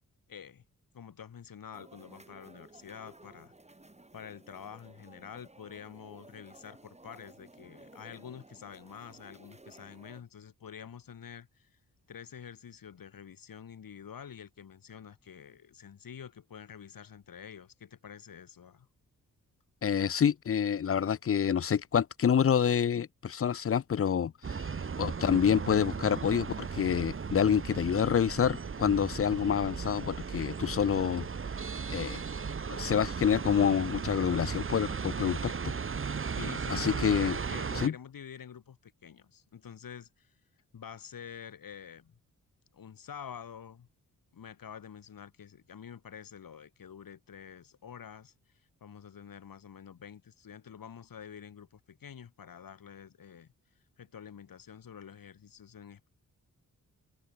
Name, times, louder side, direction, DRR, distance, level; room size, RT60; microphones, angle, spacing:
voice 1, 0.3-0.6 0.9-3.5 4.1-11.8 12.1-18.9 36.4-40.3 40.7-42.1 42.7-43.9 44.3-48.3 48.8-53.5 54.0-56.1, left 8 dB, 75° left, 6.3 m, -47 dB
sound 1, 1.7-10.2, right 2 dB, 20° right, 5.1 m, -55 dB
voice 2, 19.8-24.7 25.0-31.3 31.9-32.2 32.7-35.7 36.7-37.4 37.8-37.9, left 8 dB, 40° left, 0.6 m, -27 dB
sound 2, 24.4-37.9, right 5 dB, 35° right, 1.1 m, -36 dB
cardioid pair, 65°, 34 cm